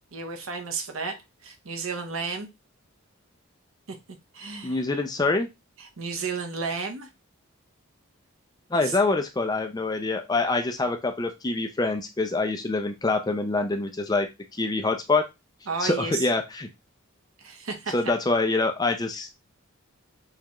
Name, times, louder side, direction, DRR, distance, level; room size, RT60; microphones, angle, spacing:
voice 1, 0.1-2.5 3.9-4.0 4.3-4.8 5.8-7.1 8.7-9.0 15.7-16.3 17.4-17.9, right 4 dB, 70° right, 0.8 m, -33 dB
voice 2, 4.6-5.5 8.7-14.3 14.6-15.2 15.8-16.7 17.9-19.4, left 3 dB, 20° left, 0.4 m, -25 dB
6.5 x 2.3 x 2.9 m
head